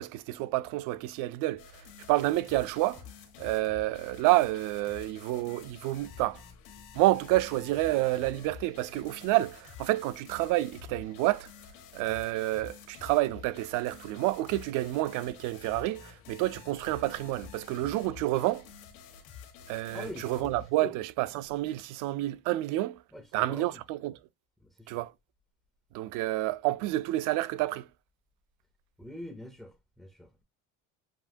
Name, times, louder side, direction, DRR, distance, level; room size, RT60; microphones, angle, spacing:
voice 1, 0.0-1.6 2.1-3.0 3.4-6.4 6.9-11.5 11.9-18.6 19.7-23.0 23.3-24.2 24.9-25.1 25.9-27.9, right 17 dB, 70° right, 0.5 m, -29 dB
sound 1, 1.6-20.7, left 7 dB, 90° left, 1.5 m, -49 dB
voice 2, 19.9-20.5 20.8-20.9 23.1-23.7 24.6-25.0 29.0-30.4, left 1 dB, ahead, 0.4 m, -44 dB
7.4 x 2.7 x 2.6 m
cardioid pair, 165°, 33 cm